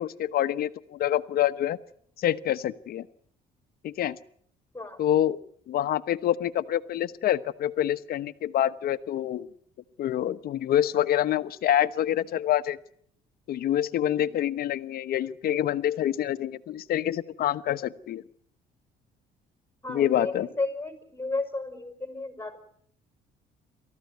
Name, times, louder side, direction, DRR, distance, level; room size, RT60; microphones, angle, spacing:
voice 1, 0.0-1.8 2.2-3.1 3.8-4.2 5.0-5.4 5.7-9.5 10.0-12.8 13.5-18.2 19.9-20.5, left 11 dB, 65° left, 12 dB, 1.1 m, -26 dB
voice 2, 19.8-22.6, left 2 dB, 10° left, 7 dB, 5.5 m, -33 dB
29.0 x 14.5 x 9.3 m, 0.66 s
cardioid pair, 110°, 17 cm